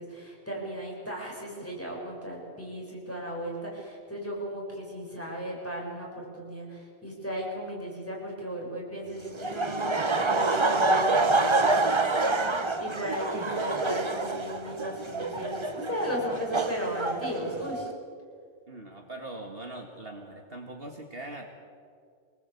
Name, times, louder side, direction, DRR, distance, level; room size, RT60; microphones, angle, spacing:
voice 1, 0.0-12.0 12.8-17.9, equal, 10° left, -3 dB, 6.8 m, -35 dB
Laughter, 9.4-17.9, right 3 dB, 25° right, 1.0 m, -27 dB
voice 2, 18.7-21.5, right 2 dB, 45° right, 2 dB, 2.1 m, -41 dB
26.0 x 19.5 x 8.5 m, 2.3 s
omnidirectional pair, 1.4 m